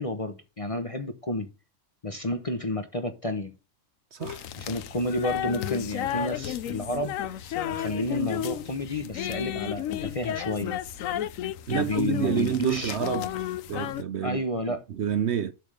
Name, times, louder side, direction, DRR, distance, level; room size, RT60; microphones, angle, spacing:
voice 1, 0.0-1.5 2.0-3.5 4.6-10.8 11.7-12.9 14.2-14.8, left 1 dB, 30° left, 0.8 m, -31 dB
voice 2, 4.1-4.4 11.7-13.3 13.7-14.5 14.9-15.5, right 9 dB, 60° right, 0.8 m, -28 dB
sound 1, 4.2-14.0, left 11 dB, 75° left, 1.0 m, -32 dB
7.7 x 3.5 x 6.3 m
omnidirectional pair, 1.4 m